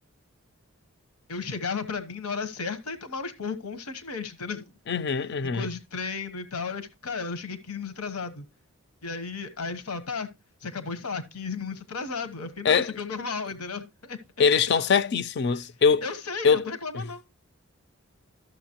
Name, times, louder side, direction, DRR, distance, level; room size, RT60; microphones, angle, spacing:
voice 1, 1.3-4.6 5.4-8.4 9.0-10.3 10.6-14.2 15.5-15.6 16.0-17.2, left 4 dB, 90° left, 1.1 m, -34 dB
voice 2, 4.9-5.7 12.6-12.9 14.4-16.0 16.4-16.6 16.9-17.0, left 6 dB, 50° left, 0.4 m, -22 dB
13.0 x 6.9 x 2.9 m
head